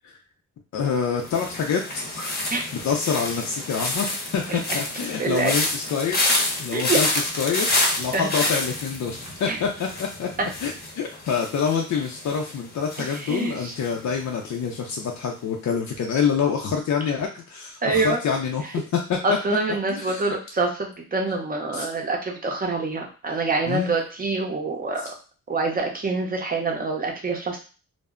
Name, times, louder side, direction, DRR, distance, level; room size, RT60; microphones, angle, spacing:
voice 1, 0.7-2.3 2.7-10.3 10.6-18.8 19.3-19.4 19.9-20.4 21.7-21.9 23.7-23.9, left 6 dB, 60° left, 0 dB, 0.5 m, -26 dB
sound 1, 1.2-14.3 14.5-15.0, left 2 dB, 30° left, 0.7 m, -28 dB
voice 2, 5.2-5.6 6.7-7.0 8.1-8.3 9.5-9.6 13.1-13.8 17.8-18.2 19.2-25.1 25.5-27.6, right 3 dB, 25° right, 2 dB, 0.7 m, -26 dB
2.1 x 2.0 x 3.5 m, 0.35 s
cardioid pair, 100°, 33 cm